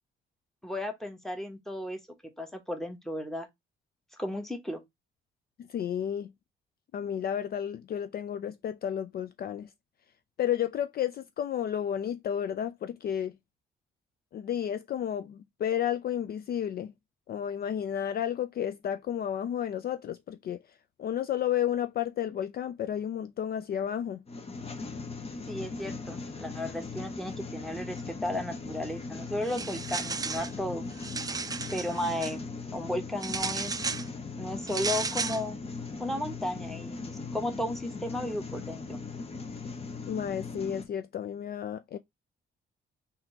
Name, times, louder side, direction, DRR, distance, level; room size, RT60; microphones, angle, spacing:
voice 1, 0.6-2.0 2.4-3.5 4.2-4.8 25.5-30.8 31.7-33.8 34.4-35.6 36.0-39.0, left 1 dB, ahead, 1.1 m, -34 dB
voice 2, 5.7-6.3 6.9-9.7 10.4-13.4 14.3-16.9 17.3-20.6 21.0-24.2 40.1-42.0, left 9 dB, 50° left, 0.4 m, -32 dB
sound 1, 24.3-40.9, left 4 dB, 30° left, 0.9 m, -39 dB
sound 2, 29.4-30.5 30.9-32.3 33.2-34.1 34.7-35.4, right 4 dB, 20° right, 0.4 m, -34 dB
3.6 x 2.8 x 4.4 m
cardioid pair, 90°, 20 cm